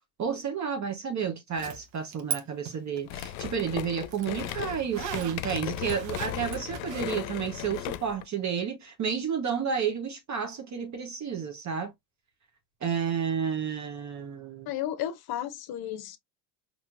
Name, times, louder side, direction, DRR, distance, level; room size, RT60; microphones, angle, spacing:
voice 1, 0.2-11.9 12.8-14.7, right 7 dB, 35° right, 1.0 m, -31 dB
Zipper (clothing), 1.5-2.4 2.7-7.0, right 9 dB, 65° right, 1.2 m, -39 dB
sound 1, 3.1-8.3, left 12 dB, 80° left, 0.6 m, -36 dB
voice 2, 14.7-16.2, left 11 dB, 45° left, 0.8 m, -33 dB
4.4 x 3.0 x 2.5 m
hypercardioid pair, 85°, 50 cm